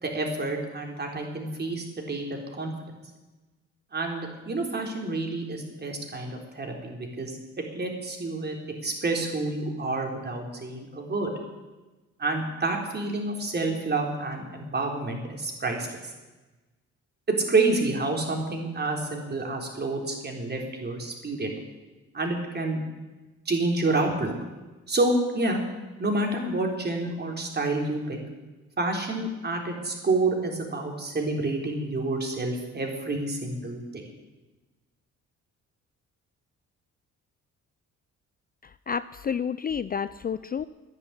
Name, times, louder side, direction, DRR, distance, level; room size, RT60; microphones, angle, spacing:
voice 1, 0.0-2.7 3.9-8.6 8.8-11.3 12.2-16.0 17.3-21.5 22.1-22.8 23.5-24.3 24.9-25.6 26.0-28.2 28.8-34.0, right 2 dB, 35° right, 1 dB, 3.8 m, -28 dB
voice 2, 38.6-40.6, left 7 dB, 30° left, 15 dB, 0.4 m, -30 dB
11.0 x 10.5 x 10.0 m, 1.2 s
cardioid pair, 90°, 30 cm